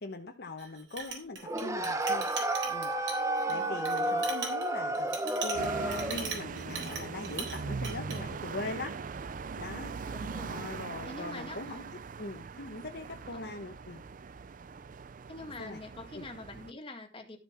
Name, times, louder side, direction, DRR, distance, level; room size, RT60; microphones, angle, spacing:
voice 1, 0.0-2.3 2.7-5.2 5.4-9.0 9.6-10.2 10.5-11.8 12.2-14.0 15.6-15.8 16.1-16.3, left 2 dB, 60° left, 1.1 m, -41 dB
Chink clink, 0.6-7.6 7.8-8.2, right 5 dB, 90° right, 3.9 m, -39 dB
sound 1, 1.4-6.3, right 1 dB, 15° right, 1.0 m, -31 dB
voice 2, 3.4-3.8 10.1-10.7 11.1-11.8 13.3-13.5 15.3-17.4, left 2 dB, 30° left, 2.0 m, -45 dB
sound 2, 5.5-16.7, right 4 dB, 50° right, 0.5 m, -41 dB
12.5 x 7.1 x 4.3 m
head